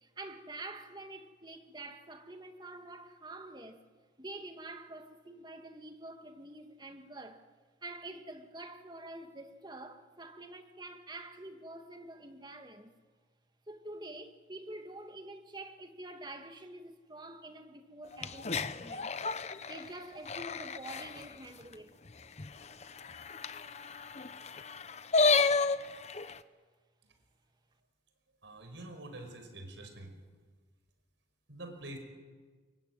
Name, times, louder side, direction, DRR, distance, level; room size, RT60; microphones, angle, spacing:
voice 1, 0.0-3.8 4.2-7.4 7.8-13.0 13.7-19.1 19.7-21.9, right 2 dB, 25° right, 1.9 m, -47 dB
sound 1, 18.1-21.3 21.7-21.8 22.1-22.2 22.4-26.4, left 4 dB, 35° left, 0.8 m, -32 dB
voice 2, 28.4-30.1 31.5-32.0, right 1 dB, 70° right, 5.4 m, -46 dB
25.0 x 23.0 x 9.6 m
head